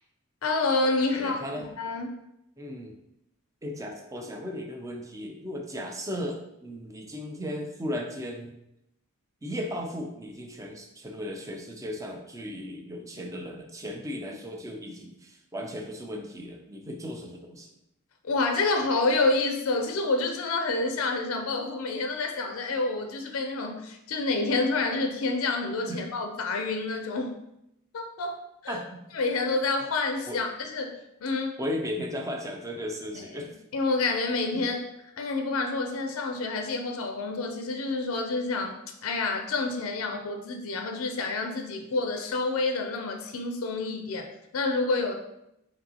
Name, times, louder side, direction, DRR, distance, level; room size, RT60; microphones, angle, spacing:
voice 1, 0.4-2.1 18.2-27.4 27.9-28.8 29.1-31.5 33.1-33.4 33.7-34.8 35.2-45.1, left 3 dB, 80° left, 4 dB, 0.5 m, -28 dB
voice 2, 1.1-1.6 2.6-2.9 3.6-8.5 9.4-17.7 25.9-26.0 28.7-29.0 30.3-30.4 31.6-33.5 34.5-34.7, equal, 15° right, 2 dB, 0.5 m, -36 dB
5.2 x 2.7 x 2.8 m, 0.83 s
head